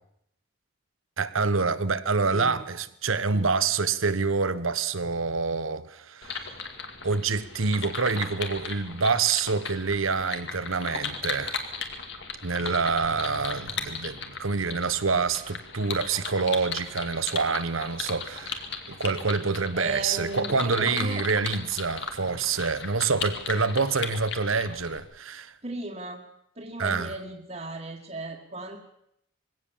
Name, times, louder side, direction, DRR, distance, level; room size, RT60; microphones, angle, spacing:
voice 1, 1.2-6.5 7.0-11.6 12.4-25.5 26.8-27.1, right 4 dB, 85° right, 1.2 m, -27 dB
voice 2, 2.3-2.6 3.3-3.5 19.7-21.2 25.6-26.2 26.6-28.8, right 2 dB, 35° right, 1.9 m, -35 dB
sound 1, 6.2-25.0, left 5 dB, 60° left, 2.3 m, -37 dB
22.0 x 17.0 x 7.4 m
head